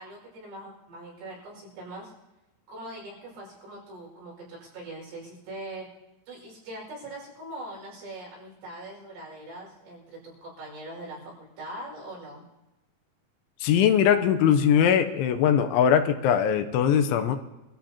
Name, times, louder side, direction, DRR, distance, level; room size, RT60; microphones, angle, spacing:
voice 1, 0.0-2.1 2.7-5.9 6.3-11.3 11.6-12.4, right 1 dB, 75° right, -3 dB, 7.7 m, -41 dB
voice 2, 13.6-17.4, left 8 dB, 80° left, 7 dB, 3.1 m, -21 dB
25.0 x 14.0 x 2.9 m, 1.0 s
omnidirectional pair, 5.5 m